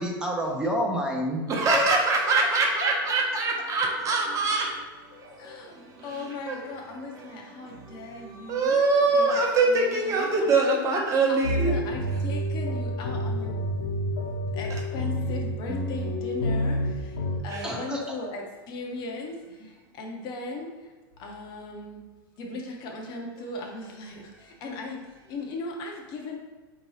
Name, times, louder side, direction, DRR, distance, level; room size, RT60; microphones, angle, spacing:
voice 1, 0.0-1.4 1.7-2.0 17.6-18.0, equal, 5° right, -1 dB, 0.5 m, -28 dB
voice 2, 1.5-4.7 6.1-6.6 7.2-7.3 8.5-11.8 17.5-17.7, right 3 dB, 25° right, -1 dB, 0.9 m, -23 dB
voice 3, 5.1-5.8 6.0-8.8 9.1-10.5 11.3-13.6 14.5-22.0 22.4-26.4, left 2 dB, 35° left, 0 dB, 0.7 m, -38 dB
sound 1, 11.4-17.4, equal, 75° left, 1.0 m, -28 dB
4.4 x 2.8 x 3.0 m, 1.2 s
hypercardioid pair, 125°, 12 cm